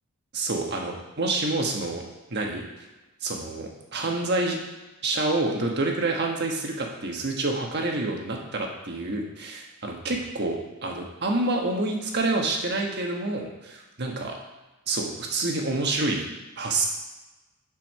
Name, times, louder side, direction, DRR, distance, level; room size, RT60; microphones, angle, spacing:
voice 1, 0.3-2.0 2.3-2.6 3.2-4.6 5.0-14.4 14.9-16.3 16.6-16.9, right 2 dB, 50° right, 1 dB, 1.4 m, -28 dB
7.8 x 5.6 x 5.5 m, 1.1 s
head